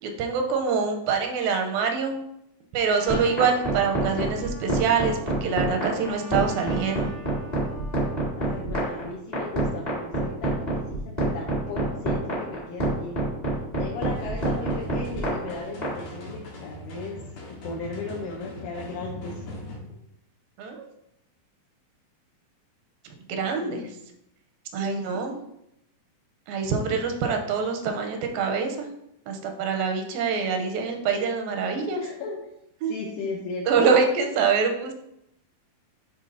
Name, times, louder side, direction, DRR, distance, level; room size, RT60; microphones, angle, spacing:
voice 1, 0.0-2.2 2.7-7.1 20.6-20.9 23.3-23.8 24.7-25.4 26.5-28.9 29.3-32.0 32.8-32.9 33.7-34.9, right 5 dB, 85° right, 4 dB, 2.4 m, -25 dB
Trumpet, 2.8-8.3, right 2 dB, 40° right, 1.0 m, -45 dB
sound 1, 3.1-15.9, right 2 dB, 25° left, 0.9 m, -26 dB
voice 2, 8.4-13.3 13.8-17.2 17.6-19.4 23.6-24.0 24.8-25.4 32.0-32.5 32.9-33.9, left 3 dB, 75° left, -2 dB, 2.0 m, -36 dB
sound 2, 14.1-19.8, left 1 dB, 55° left, 2.3 m, -40 dB
10.5 x 3.6 x 2.7 m, 0.79 s
omnidirectional pair, 4.2 m